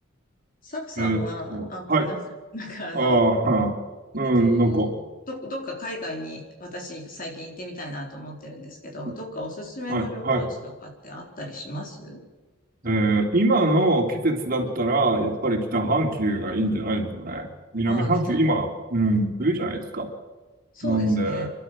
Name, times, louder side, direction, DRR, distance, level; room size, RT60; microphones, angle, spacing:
voice 1, 0.6-2.2 2.5-3.2 4.2-4.9 5.3-12.2 17.9-18.4 20.7-21.5, left 1 dB, 45° left, 1 dB, 4.3 m, -35 dB
voice 2, 1.5-2.1 2.9-3.8 4.1-4.9 9.1-9.2 9.9-10.5 12.8-20.1 20.8-21.5, right 2 dB, 45° right, 2 dB, 3.6 m, -23 dB
29.5 x 12.0 x 7.7 m, 1.3 s
head